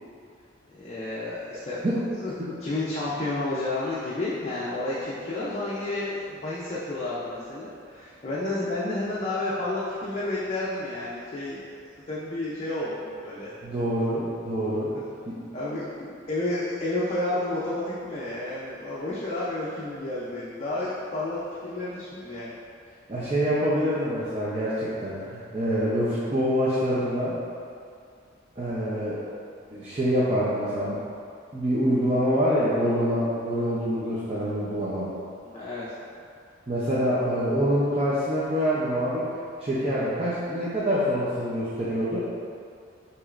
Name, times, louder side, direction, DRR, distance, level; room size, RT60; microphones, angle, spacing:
voice 1, 0.7-1.8 2.2-2.3 2.6-11.8 12.1-13.5 14.9-15.0 15.5-22.5 35.4-36.0, left 2 dB, 35° left, -8 dB, 0.5 m, -31 dB
voice 2, 13.6-14.9 15.3-15.4 23.1-27.4 28.6-29.2 29.7-31.0 31.5-35.1 36.7-39.3 39.6-42.3, equal, 30° right, -10 dB, 0.6 m, -25 dB
6.3 x 3.0 x 2.5 m, 2.4 s
head